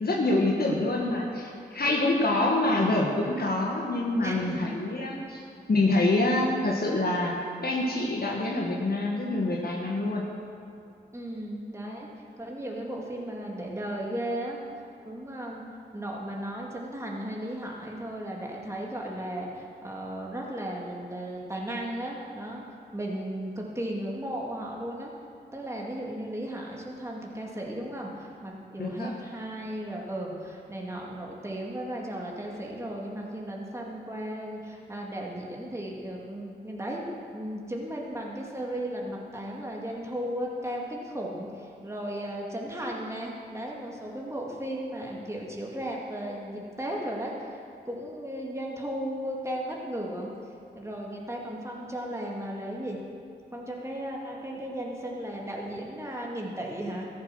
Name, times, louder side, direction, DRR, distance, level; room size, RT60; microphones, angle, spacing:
voice 1, 0.0-10.2 28.8-29.1, left 2 dB, 60° left, -2 dB, 1.6 m, -26 dB
voice 2, 0.7-1.0 4.2-4.8 5.3-5.5 11.1-12.1 12.4-14.6 15.0-15.6 15.9-22.6 22.9-25.1 25.5-37.0 37.3-47.6 47.9-50.3 50.7-53.0 53.5-57.1, right 1 dB, 15° right, -2 dB, 2.3 m, -35 dB
14.0 x 7.6 x 6.2 m, 2.4 s
cardioid pair, 45°, 18 cm